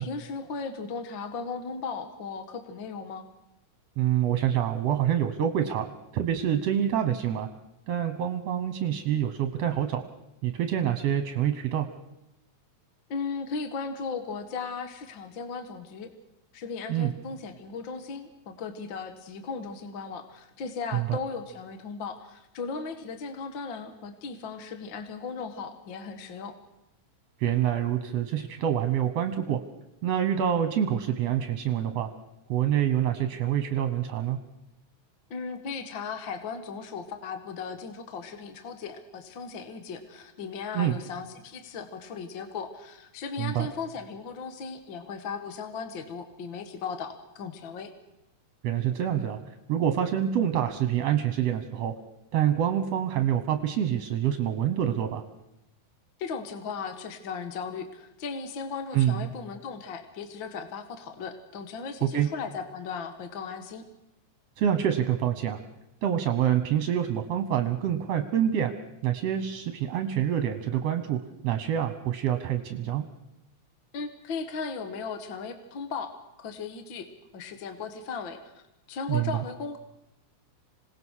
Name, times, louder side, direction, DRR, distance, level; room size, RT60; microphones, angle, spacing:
voice 1, 0.0-3.3 13.1-16.1 16.5-26.5 35.3-47.9 56.2-63.8 73.9-77.1 77.3-79.8, left 5 dB, 45° left, 8 dB, 2.0 m, -37 dB
voice 2, 4.0-5.9 6.1-7.5 7.9-10.0 10.4-11.9 16.9-17.1 20.9-21.2 27.4-29.6 30.0-32.1 32.5-34.4 40.7-41.0 43.4-43.7 48.6-49.4 49.7-51.9 52.3-55.2 58.9-59.3 62.0-62.3 64.6-65.6 66.0-68.7 69.0-73.1 79.1-79.3, right 10 dB, 65° right, 8 dB, 2.2 m, -26 dB
27.0 x 18.5 x 6.4 m, 0.90 s
omnidirectional pair, 3.4 m